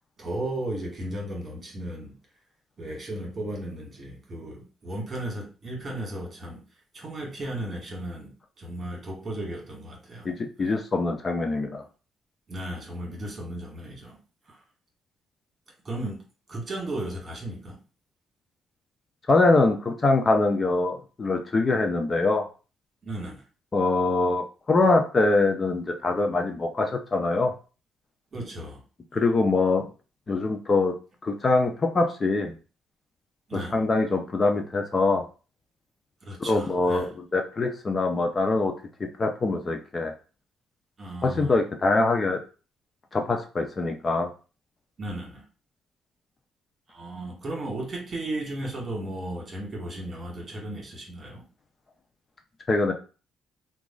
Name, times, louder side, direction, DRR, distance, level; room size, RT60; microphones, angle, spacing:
voice 1, 0.2-2.2 2.8-6.6 6.9-10.3 10.6-10.8 12.5-14.2 14.5-14.6 15.8-16.2 16.5-17.8 23.0-23.4 28.3-28.8 33.5-33.8 36.2-37.1 41.0-41.6 45.0-45.4 46.9-51.5, right 1 dB, 35° right, -1 dB, 1.8 m, -35 dB
voice 2, 10.2-11.8 19.3-22.5 23.7-27.5 29.1-29.8 30.3-30.9 31.2-32.5 33.5-35.2 36.4-38.7 39.0-40.1 41.2-42.4 43.1-44.3 52.7-52.9, left 3 dB, 35° left, 4 dB, 0.6 m, -23 dB
2.9 x 2.5 x 3.8 m, 0.35 s
cardioid pair, 90°, 0 cm